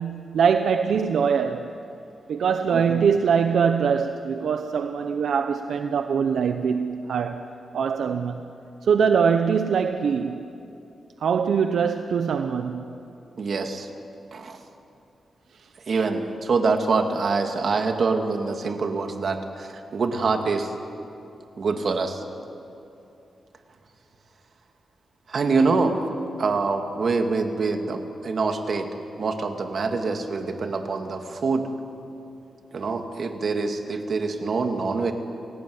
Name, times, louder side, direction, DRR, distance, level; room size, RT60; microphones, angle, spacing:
voice 1, 0.0-1.7 2.3-7.4 7.7-8.5 8.8-10.4 11.2-12.9 16.0-16.1, right 6 dB, 75° right, 1.0 m, -23 dB
voice 2, 2.7-3.0 13.4-13.9 14.3-14.6 15.9-20.7 21.6-22.2 25.3-26.0 26.4-28.9 29.2-31.7 32.7-35.1, right 4 dB, 50° right, 2.4 m, -25 dB
29.0 x 18.5 x 9.7 m
wide cardioid pair, 125°, 0 cm